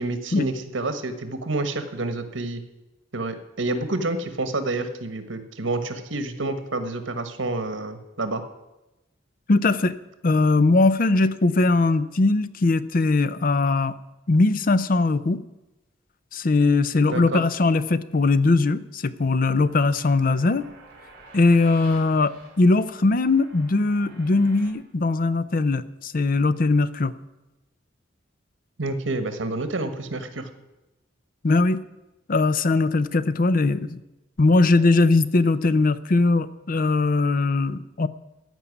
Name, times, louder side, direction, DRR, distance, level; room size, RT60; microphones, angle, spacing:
voice 1, 0.0-2.6 3.1-8.4 17.1-17.4 28.8-30.5, right 2 dB, 85° right, 9 dB, 1.4 m, -28 dB
voice 2, 9.5-9.9 10.2-14.0 14.3-15.4 16.3-20.7 21.3-22.3 22.6-27.1 31.4-31.8 32.3-34.0 34.4-38.1, left 3 dB, 45° left, 15 dB, 0.6 m, -20 dB
sound 1, 19.6-24.7, right 3 dB, 50° right, 4.8 m, -49 dB
14.5 x 5.5 x 9.7 m, 1.0 s
head